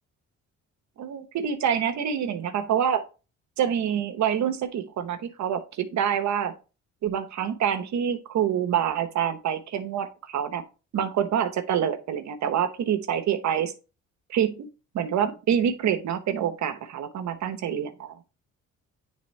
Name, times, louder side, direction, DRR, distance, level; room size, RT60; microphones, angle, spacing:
voice 1, 1.0-3.0 3.6-6.5 7.0-10.6 10.9-13.7 14.3-14.7 14.9-18.2, right 9 dB, 65° right, 8 dB, 1.0 m, -26 dB
9.4 x 3.5 x 3.2 m, 0.32 s
cardioid pair, 90°, 30 cm